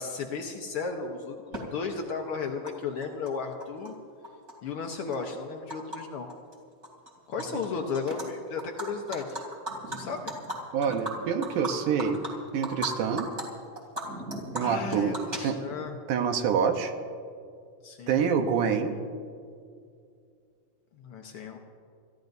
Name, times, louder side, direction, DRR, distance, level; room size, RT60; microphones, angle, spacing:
voice 1, 0.0-4.0 4.6-6.3 7.3-9.4 9.9-10.4 14.6-16.0 17.8-18.3 20.9-21.6, left 5 dB, 75° left, 3 dB, 1.3 m, -34 dB
Animal, 1.5-1.6 2.7-2.8 3.0-3.9 4.2-6.0 6.3-6.5 6.8-7.7 7.9-8.2 8.6-12.9 13.2-13.4 13.8-15.9, right 1 dB, 20° right, 2.9 m, -37 dB
voice 2, 10.7-12.2 12.5-13.3 14.5-15.2 15.4-15.6 16.1-16.9 18.1-19.0, right 7 dB, 75° right, 6 dB, 2.4 m, -26 dB
29.0 x 14.5 x 2.7 m, 2.3 s
omnidirectional pair, 3.7 m